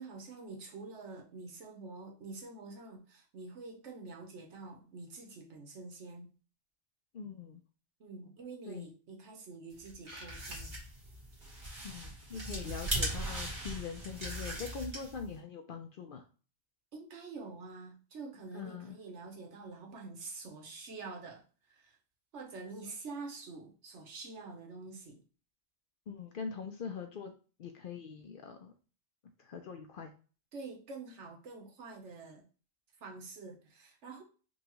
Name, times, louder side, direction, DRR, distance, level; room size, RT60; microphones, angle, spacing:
voice 1, 0.0-6.3 8.0-10.8 12.6-12.7 16.9-22.0 22.3-25.2 30.5-32.4 33.0-34.2, right 3 dB, 75° right, 1.2 m, -47 dB
voice 2, 7.1-7.6 8.7-8.9 11.8-16.2 18.5-19.0 26.1-27.3 27.6-28.7 29.4-30.1, left 6 dB, 60° left, 0.6 m, -43 dB
sound 1, 9.8-15.3, right 1 dB, 45° right, 1.5 m, -39 dB
5.4 x 2.3 x 3.0 m
omnidirectional pair, 1.2 m